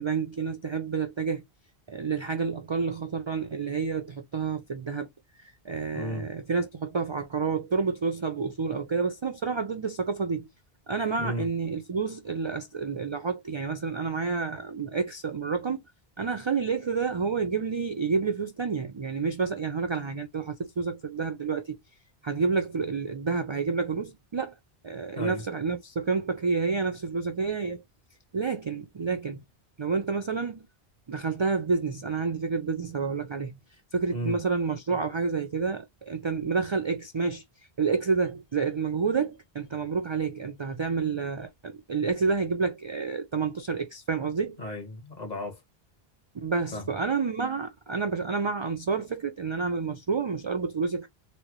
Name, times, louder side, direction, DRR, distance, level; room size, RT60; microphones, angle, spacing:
voice 1, 0.0-1.4 1.9-5.1 5.6-10.5 10.9-15.8 16.2-21.8 22.2-24.5 24.8-27.8 28.3-29.4 29.8-30.7 31.1-33.6 33.9-37.4 37.8-44.6 46.3-51.1, right 5 dB, 50° right, 0.3 m, -29 dB
voice 2, 5.9-6.2 11.2-11.5 25.1-25.4 34.1-34.4 44.6-45.6 46.7-46.9, equal, 45° left, 1.3 m, -34 dB
4.1 x 2.1 x 3.0 m
omnidirectional pair, 1.0 m